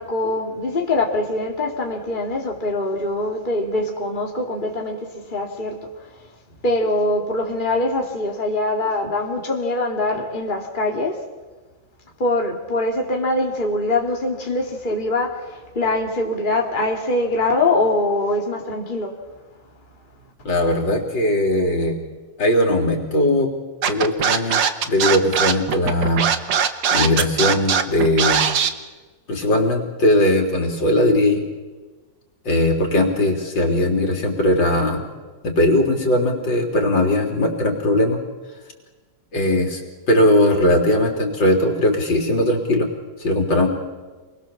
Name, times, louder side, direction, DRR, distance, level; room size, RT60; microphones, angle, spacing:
voice 1, 0.0-6.2 6.6-11.3 12.2-19.1, left 2 dB, 25° left, 0 dB, 2.7 m, -23 dB
voice 2, 20.5-22.0 22.4-23.5 23.8-26.3 26.9-28.5 29.3-31.4 32.4-35.0 35.4-38.2 39.3-39.8 40.1-42.9 43.2-43.7, left 1 dB, 70° left, 2 dB, 3.9 m, -19 dB
Scratching (performance technique), 23.8-28.7, right 7 dB, 70° right, 1.9 m, -19 dB
28.0 x 21.5 x 7.2 m, 1.3 s
omnidirectional pair, 2.1 m